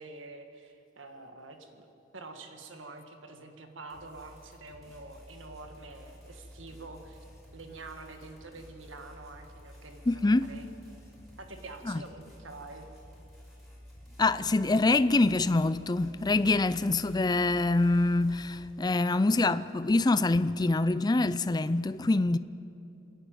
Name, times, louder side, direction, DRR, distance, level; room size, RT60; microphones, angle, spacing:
voice 1, 0.0-1.9 2.1-7.2 7.5-10.6 11.4-12.9, right 3 dB, 85° right, 1.8 m, -47 dB
sound 1, 3.9-18.7, equal, ahead, 5.5 m, -52 dB
voice 2, 10.1-10.5 11.9-12.0 14.2-22.4, left 2 dB, 20° left, 0.4 m, -25 dB
27.5 x 11.0 x 9.1 m
head